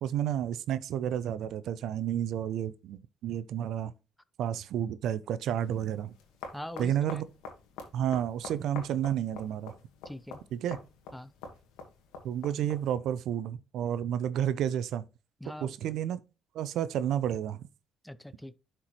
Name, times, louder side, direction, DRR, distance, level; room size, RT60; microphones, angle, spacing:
voice 1, 0.0-3.9 4.4-6.1 6.8-7.2 7.9-9.7 10.5-10.8 12.2-15.0 15.6-16.2 16.5-17.7, right 10 dB, 70° right, 0.5 m, -31 dB
sound 1, 5.6-13.0, left 4 dB, 80° left, 1.6 m, -47 dB
voice 2, 6.5-7.2 10.0-10.4 11.1-11.3 15.4-15.8 18.0-18.6, left 1 dB, 5° left, 0.6 m, -42 dB
11.0 x 4.5 x 3.1 m
supercardioid pair, 60°, 0 cm